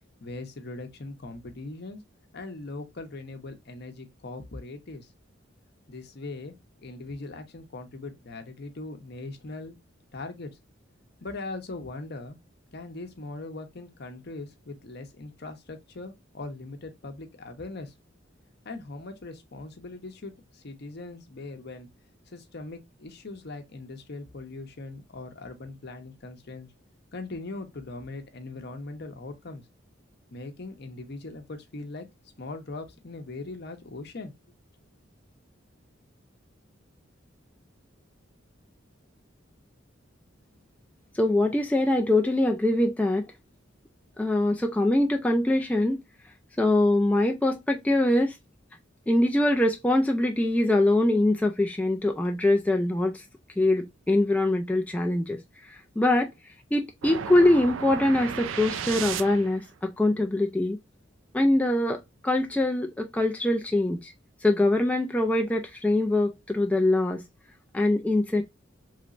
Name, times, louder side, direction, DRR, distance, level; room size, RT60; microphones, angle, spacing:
voice 1, 0.2-2.0 2.3-5.1 5.9-6.5 6.8-9.8 10.1-10.5 11.2-12.4 12.7-17.9 18.6-21.9 22.3-26.7 27.1-29.6 30.3-32.1 32.4-34.3, left 2 dB, 55° left, 0.7 m, -40 dB
voice 2, 41.1-43.2 44.2-46.0 46.6-48.4 49.1-53.2 53.6-56.3 56.7-60.8 61.3-64.1 64.4-67.2 67.7-68.4, left 1 dB, 5° left, 0.3 m, -23 dB
sound 1, 57.0-59.7, right 8 dB, 75° right, 0.4 m, -34 dB
3.2 x 3.0 x 2.4 m
head